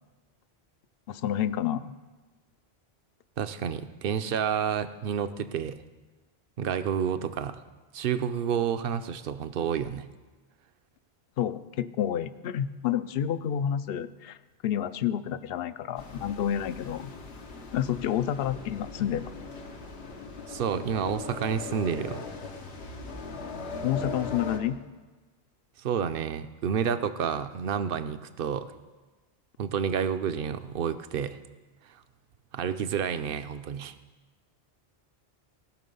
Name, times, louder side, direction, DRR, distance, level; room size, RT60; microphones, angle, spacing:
voice 1, 1.1-1.9 11.4-14.4 14.6-17.1 17.7-19.3 23.8-24.8, left 10 dB, 70° left, 14 dB, 0.7 m, -29 dB
voice 2, 3.4-5.8 6.6-7.6 7.9-10.1 20.5-22.2 25.8-28.7 29.6-31.4 32.5-33.9, right 7 dB, 65° right, 11 dB, 0.8 m, -29 dB
sound 1, 16.0-24.6, left 4 dB, 85° left, 1.4 m, -39 dB
18.0 x 6.4 x 5.4 m, 1.2 s
omnidirectional pair, 1.1 m